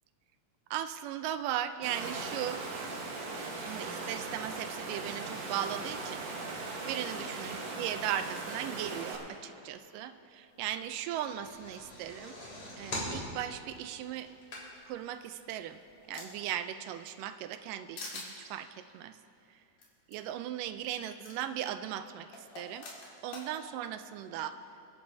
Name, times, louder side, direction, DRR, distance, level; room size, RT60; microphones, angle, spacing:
voice 1, 0.7-2.6 3.6-6.2 6.9-12.4 12.8-14.3 14.9-15.8 16.1-19.2 20.1-22.9 23.2-24.6, right 11 dB, 85° right, 10 dB, 2.2 m, -37 dB
Water, 1.8-9.2, right 3 dB, 60° right, 2.2 m, -39 dB
sound 1, 11.1-15.0 15.5-15.6 15.9-16.0, left 1 dB, 45° left, 3.7 m, -41 dB
sound 2, 15.1-16.5 17.0-17.7 18.0-18.3 19.8-19.9 20.1-20.2 21.2-21.4 22.3-23.5, left 3 dB, 75° left, 3.7 m, -45 dB
27.0 x 11.0 x 2.7 m, 2.9 s
omnidirectional pair, 3.8 m